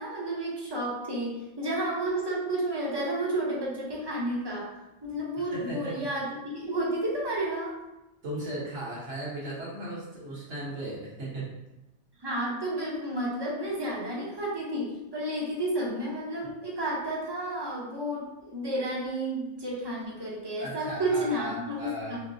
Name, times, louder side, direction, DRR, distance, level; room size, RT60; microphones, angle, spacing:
voice 1, 0.0-4.7 5.0-7.8 12.2-22.2, right 1 dB, 25° right, -5 dB, 0.7 m, -31 dB
voice 2, 5.4-6.1 8.2-11.5 20.6-22.2, right 1 dB, 70° right, -7 dB, 1.4 m, -36 dB
4.2 x 2.1 x 2.5 m, 0.94 s
omnidirectional pair, 1.2 m